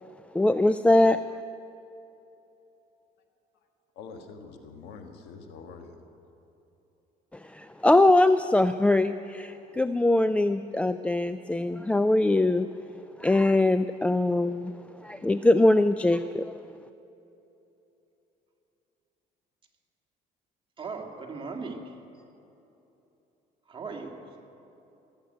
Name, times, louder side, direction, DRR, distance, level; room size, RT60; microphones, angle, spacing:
voice 1, 0.3-1.2 7.3-12.7 13.2-14.7 15.0-16.6, left 2 dB, 5° left, 11 dB, 0.3 m, -22 dB
voice 2, 3.9-6.0, left 5 dB, 90° left, 5 dB, 1.6 m, -45 dB
voice 3, 20.8-22.0 23.7-24.4, right 4 dB, 30° right, 1 dB, 2.0 m, -38 dB
18.5 x 8.0 x 9.3 m, 3.0 s
cardioid pair, 110°, 17 cm